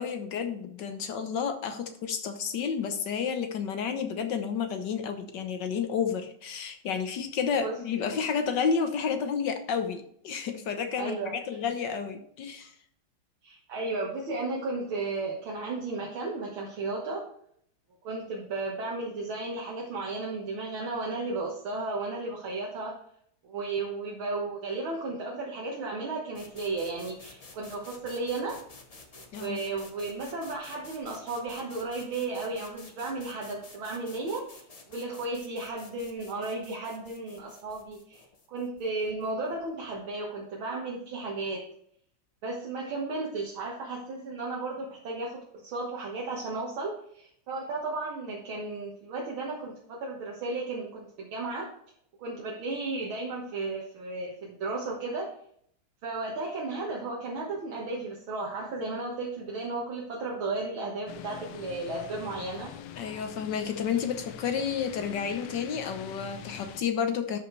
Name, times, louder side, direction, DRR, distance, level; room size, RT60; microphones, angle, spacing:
voice 1, 0.0-12.7 29.3-29.6 63.0-67.4, left 6 dB, 65° left, 7 dB, 1.4 m, -31 dB
voice 2, 7.6-8.2 11.0-11.3 12.6-12.7 13.4-17.3 18.0-23.0 23.4-28.6 29.2-34.6 34.9-41.6 42.4-51.7 52.2-55.3 56.0-62.7, right 3 dB, 75° right, -3 dB, 2.2 m, -34 dB
sound 1, 26.3-40.1, left 3 dB, 45° left, 0.5 m, -51 dB
sound 2, 61.1-66.8, left 10 dB, 85° left, 1.5 m, -44 dB
12.5 x 5.5 x 3.2 m, 0.66 s
omnidirectional pair, 2.3 m